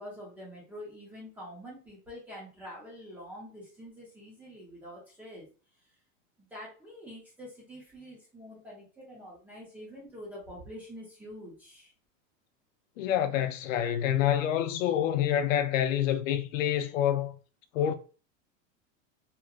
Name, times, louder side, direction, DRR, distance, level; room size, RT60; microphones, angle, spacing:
voice 1, 0.0-5.5 6.4-11.9, equal, 5° right, 0.5 m, -46 dB
voice 2, 13.0-17.3 17.7-17.9, left 10 dB, 85° left, 0.5 m, -27 dB
2.9 x 2.3 x 2.3 m
supercardioid pair, 165°, 38 cm